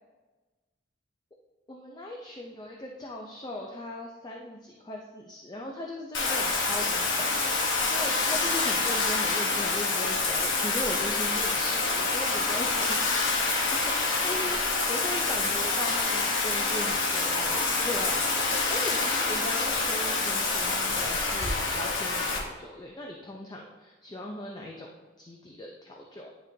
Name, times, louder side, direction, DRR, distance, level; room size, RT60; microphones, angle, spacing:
voice 1, 1.7-13.0 13.4-24.9 25.2-26.3, left 1 dB, 20° left, -1 dB, 0.5 m, -38 dB
Bathtub (filling or washing), 6.1-22.4, left 3 dB, 85° left, 1.1 m, -27 dB
10.0 x 3.8 x 2.7 m, 1.2 s
head